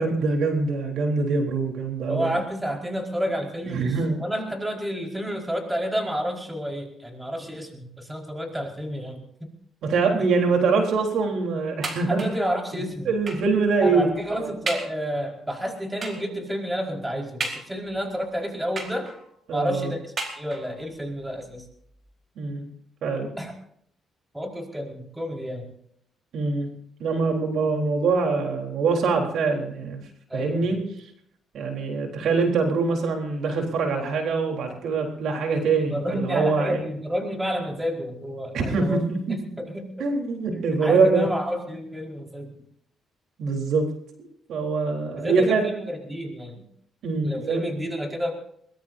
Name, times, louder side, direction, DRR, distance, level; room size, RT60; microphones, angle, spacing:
voice 1, 0.0-2.4 3.7-4.2 9.8-12.2 12.7-14.5 19.5-19.9 22.4-22.7 23.0-23.3 26.3-26.7 27.0-30.8 31.5-36.8 38.5-39.4 40.0-41.3 43.4-43.9 44.2-45.7 47.0-47.6, right 4 dB, 75° right, 2 dB, 3.7 m, -24 dB
voice 2, 2.1-9.5 12.1-13.1 13.8-19.1 19.5-20.0 20.4-21.6 23.4-23.5 24.3-25.7 30.3-30.8 35.9-39.0 39.6-39.9 40.5-42.5 45.2-46.6 47.2-48.3, equal, 10° right, 1 dB, 4.8 m, -30 dB
sound 1, 11.8-12.5 13.3-13.6 14.1-14.2 14.7-15.0 16.0-16.3 17.4-18.0 18.8-19.4 20.2-20.8 21.7-21.8 22.1-22.2, right 3 dB, 40° right, 4.4 m, -34 dB
22.5 x 21.0 x 2.7 m, 0.68 s
cardioid pair, 90°, 0 cm